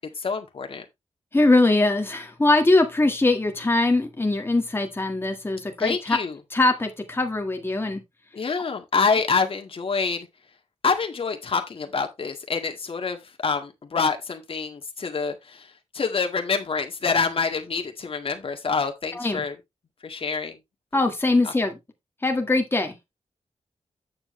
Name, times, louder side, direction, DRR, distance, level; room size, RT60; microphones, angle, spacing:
voice 1, 0.2-0.9 5.8-6.4 8.3-10.3 10.8-19.6 20.0-20.6 21.4-21.5, left 5 dB, 55° left, 1.9 m, -26 dB
voice 2, 1.3-6.2 6.5-8.0 19.1-19.4 20.9-21.8 22.2-22.9, left 2 dB, 20° left, 1.7 m, -22 dB
8.8 x 7.2 x 3.2 m
wide cardioid pair, 105°, 11 cm